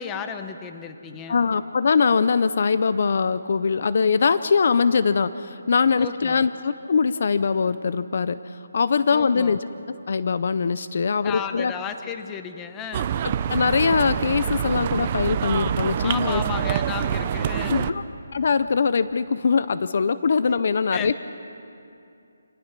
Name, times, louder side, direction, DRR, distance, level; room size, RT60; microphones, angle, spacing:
voice 1, 0.0-1.4 6.0-6.4 9.1-9.6 11.2-13.2 16.0-17.9 20.7-21.2, left 7 dB, 10° left, 8 dB, 0.8 m, -34 dB
voice 2, 1.3-9.6 10.1-11.7 13.5-16.4 17.7-18.0 18.3-21.2, left 5 dB, 50° left, 14 dB, 0.5 m, -22 dB
sound 1, 12.9-17.9, right 9 dB, 30° right, 0.5 m, -26 dB
26.5 x 19.0 x 6.0 m, 2.7 s
hypercardioid pair, 165°, 0 cm